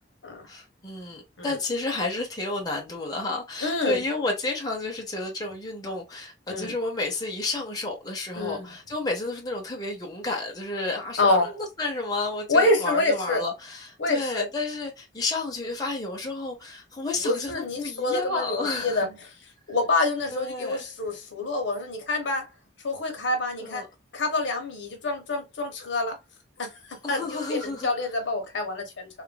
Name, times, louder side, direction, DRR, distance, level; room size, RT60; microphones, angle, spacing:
voice 1, 0.5-19.1 20.3-20.8 23.6-23.9 27.0-27.9, left 2 dB, 20° left, 0.7 m, -31 dB
voice 2, 3.6-4.0 6.5-6.7 8.3-8.7 11.2-11.5 12.5-13.4 14.0-14.5 17.2-19.1 19.7-22.5 22.8-23.9 24.1-26.2 26.6-29.1, left 2 dB, 75° left, 0.9 m, -27 dB
2.9 x 2.4 x 2.2 m
head